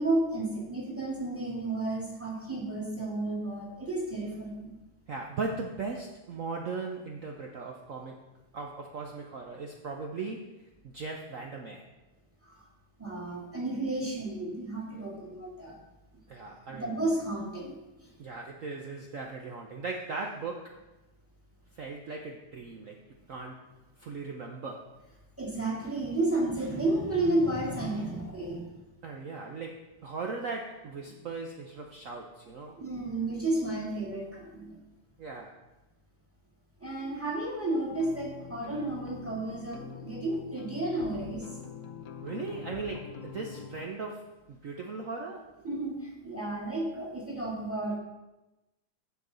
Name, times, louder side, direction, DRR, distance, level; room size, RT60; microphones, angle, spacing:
voice 1, 0.0-4.8 12.4-12.6 13.0-15.7 16.7-18.1 25.4-28.7 32.8-34.8 36.8-41.5 45.6-48.0, right 2 dB, 5° right, -2 dB, 1.7 m, -32 dB
voice 2, 5.1-10.6 10.8-11.9 16.3-17.0 18.2-20.8 21.7-23.0 23.3-23.7 24.0-24.9 29.0-32.8 35.2-35.6 42.2-45.5, right 4 dB, 65° right, 2 dB, 0.8 m, -38 dB
sound 1, 37.9-43.9, left 7 dB, 85° left, 0.7 m, -44 dB
15.0 x 5.2 x 3.9 m, 1.0 s
omnidirectional pair, 2.3 m